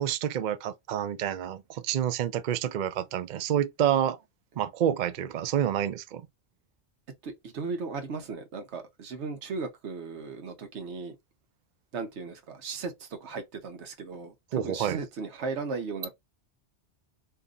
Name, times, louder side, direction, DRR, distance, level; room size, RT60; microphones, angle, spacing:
voice 1, 0.0-4.2 4.6-6.2 14.5-15.0, right 10 dB, 60° right, 0.5 m, -28 dB
voice 2, 7.2-11.2 11.9-16.1, right 4 dB, 80° right, 1.1 m, -36 dB
2.7 x 2.6 x 3.6 m
omnidirectional pair, 1.2 m